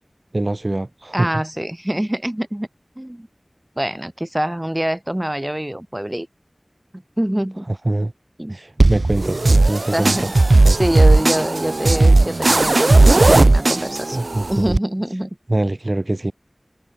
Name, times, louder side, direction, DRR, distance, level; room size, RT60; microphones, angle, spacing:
voice 1, 0.3-1.4 7.7-8.1 8.5-10.3 10.6-10.8 14.1-14.8 15.5-16.3, right 2 dB, 50° right, 2.7 m, -23 dB
voice 2, 1.1-2.7 3.0-3.3 3.8-6.3 6.9-7.7 8.4-8.5 9.9-10.3 10.8-14.2 14.5-15.3, right 1 dB, 20° right, 6.3 m, -25 dB
sound 1, 8.8-14.8, right 2 dB, 80° right, 0.4 m, -15 dB
wide cardioid pair, 45°, 0 cm